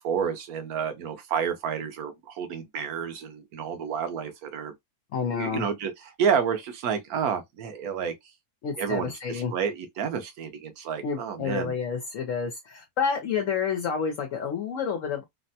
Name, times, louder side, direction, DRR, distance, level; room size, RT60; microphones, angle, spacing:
voice 1, 0.0-4.7 5.4-8.1 8.8-11.7, right 7 dB, 85° right, 1.2 m, -30 dB
voice 2, 5.1-5.7 8.6-9.5 11.0-15.2, left 6 dB, 65° left, 1.0 m, -29 dB
3.3 x 2.1 x 2.6 m
omnidirectional pair, 1.5 m